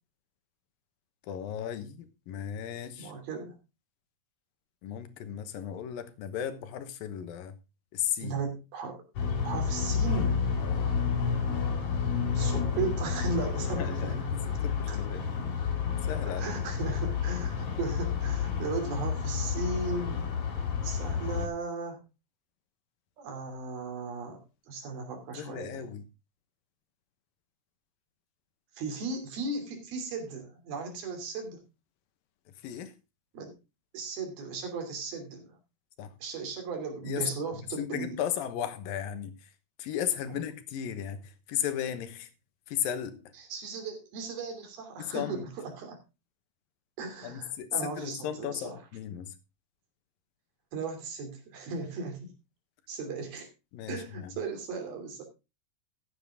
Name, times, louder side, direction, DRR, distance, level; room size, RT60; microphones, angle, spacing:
voice 1, 1.2-3.1 4.8-7.6 7.9-8.4 10.6-10.9 13.7-15.3 16.1-16.5 25.4-26.0 32.6-32.9 36.0-36.1 37.0-39.5 39.8-42.3 42.7-43.3 45.0-45.5 47.2-49.3 53.7-54.4, left 9 dB, 75° left, 2.9 m, -35 dB
voice 2, 3.0-3.6 8.2-9.0 9.4-10.4 12.3-14.1 14.9-15.0 16.4-20.3 20.8-22.0 23.2-24.4 24.7-25.8 28.8-31.6 33.3-33.5 33.9-35.6 36.2-38.1 40.3-40.4 43.4-46.0 47.0-48.8 50.7-52.3 52.9-53.5 53.9-55.2, right 4 dB, 80° right, 4.9 m, -36 dB
sound 1, 9.1-21.5, left 6 dB, 45° left, 3.2 m, -30 dB
14.0 x 9.3 x 3.7 m
omnidirectional pair, 4.2 m